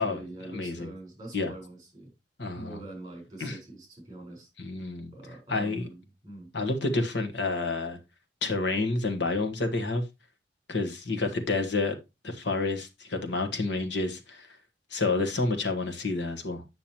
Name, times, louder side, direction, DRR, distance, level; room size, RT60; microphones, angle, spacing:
voice 1, 0.0-2.1 2.6-4.5 5.1-6.5, right 1 dB, 20° right, 4.6 m, -44 dB
voice 2, 0.5-0.9 1.3-1.5 2.4-2.8 3.4-3.6 4.6-5.1 5.5-5.9 6.5-8.0 8.4-10.0 10.7-12.0 12.2-14.5 14.9-16.6, left 3 dB, 65° left, 1.4 m, -29 dB
8.8 x 6.1 x 2.9 m
head